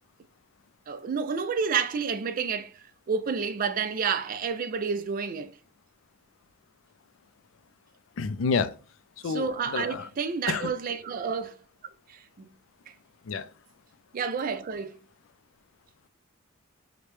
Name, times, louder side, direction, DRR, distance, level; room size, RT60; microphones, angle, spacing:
voice 1, 0.9-5.5 9.2-11.6 12.1-12.5 14.1-15.0, right 6 dB, 45° right, 0.4 m, -30 dB
voice 2, 8.2-8.7 9.2-9.5 9.7-10.0 10.5-10.7 13.3-13.5, left 5 dB, 75° left, 0.4 m, -28 dB
4.9 x 2.2 x 2.9 m
head